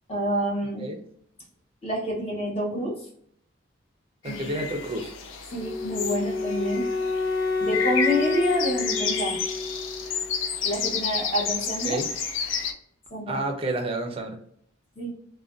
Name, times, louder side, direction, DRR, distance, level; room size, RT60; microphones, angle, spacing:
voice 1, 0.1-0.9 1.8-3.1 4.3-4.4 5.5-6.9 7.6-9.4 10.6-12.0 13.1-13.4 15.0-15.1, equal, 30° left, -3 dB, 0.9 m, -28 dB
sound 1, 4.2-12.7, left 6 dB, 75° left, 0.4 m, -31 dB
voice 2, 4.2-5.1 11.8-12.1 13.3-14.4, right 2 dB, 30° right, 3 dB, 0.4 m, -29 dB
Wind instrument woodwind instrument, 5.5-10.6, left 3 dB, 55° left, 1.1 m, -29 dB
2.4 x 2.2 x 2.4 m, 0.65 s
head